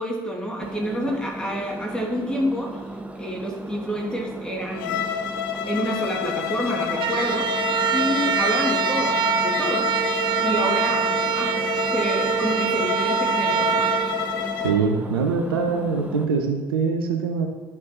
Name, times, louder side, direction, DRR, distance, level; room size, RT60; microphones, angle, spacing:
voice 1, 0.0-2.8 3.1-5.1 5.6-7.5 7.9-9.9 10.4-11.7 11.9-13.9, equal, 5° left, -1 dB, 2.5 m, -28 dB
Engine, 0.6-16.3, right 1 dB, 10° right, 0.9 m, -36 dB
Bowed string instrument, 4.7-14.8, left 9 dB, 65° left, 0.6 m, -29 dB
sound 1, 6.9-15.1, right 9 dB, 40° right, 0.5 m, -24 dB
voice 2, 14.6-17.5, right 5 dB, 75° right, 4 dB, 0.8 m, -23 dB
10.5 x 6.1 x 4.5 m, 1.3 s
figure-of-eight pair, 55°, 12 cm